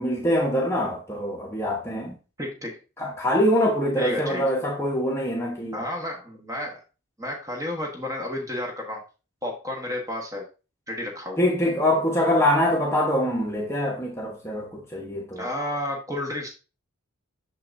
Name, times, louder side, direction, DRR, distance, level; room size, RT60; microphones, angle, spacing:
voice 1, 0.0-2.2 3.0-5.8 11.4-15.5, equal, 10° left, 1.0 m, -24 dB
voice 2, 2.4-2.8 4.0-4.4 5.7-6.8 7.2-9.0 9.4-10.4 10.9-11.5 15.4-16.5, left 1 dB, 15° right, 1.2 m, -31 dB
6.3 x 5.7 x 2.6 m
head